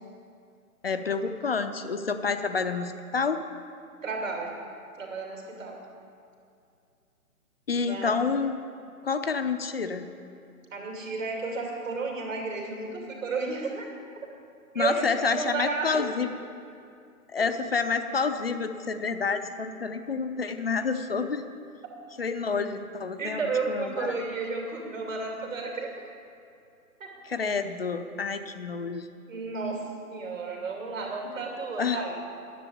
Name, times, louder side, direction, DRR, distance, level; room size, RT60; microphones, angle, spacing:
voice 1, 0.8-3.4 7.7-8.6 9.0-10.1 14.7-16.3 17.3-21.5 22.2-23.4 23.7-24.1 27.3-29.1 31.8-32.0, left 5 dB, 40° left, 9 dB, 0.6 m, -28 dB
voice 2, 4.0-4.5 5.0-5.8 7.7-8.2 10.7-13.8 14.7-16.1 23.2-25.9 27.0-27.1 29.3-29.8 30.1-32.2, right 4 dB, 55° right, 0 dB, 2.6 m, -32 dB
10.0 x 7.5 x 8.7 m, 2.5 s
figure-of-eight pair, 145°, 45 cm